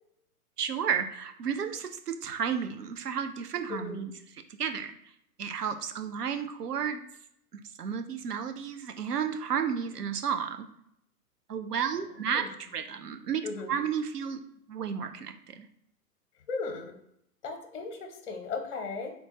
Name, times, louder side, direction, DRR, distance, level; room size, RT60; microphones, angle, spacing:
voice 1, 0.6-4.1 4.6-4.9 5.4-7.0 7.5-10.6 11.5-14.4 14.7-15.7, right 7 dB, 80° right, 7 dB, 0.6 m, -32 dB
voice 2, 3.7-4.0 12.3-12.5 13.4-13.8 16.5-17.0 17.4-19.1, left 4 dB, 50° left, 4 dB, 0.7 m, -36 dB
3.7 x 2.3 x 2.9 m, 0.74 s
figure-of-eight pair, 115°, 46 cm